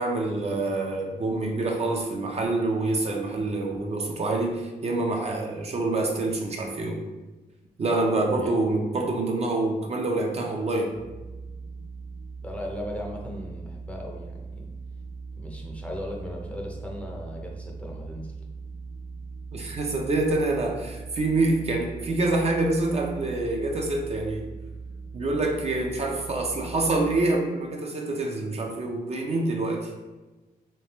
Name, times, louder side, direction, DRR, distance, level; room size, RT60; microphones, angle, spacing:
voice 1, 0.0-7.0 7.8-11.0 19.5-24.5 25.1-29.9, right 2 dB, 40° right, 1 dB, 0.5 m, -26 dB
sound 1, 10.9-27.2, right 4 dB, 70° left, 0.6 m, -40 dB
voice 2, 12.4-14.7 15.3-18.3, left 1 dB, 10° left, -1 dB, 0.5 m, -37 dB
3.3 x 3.1 x 2.9 m, 1.2 s
wide cardioid pair, 120°, 16 cm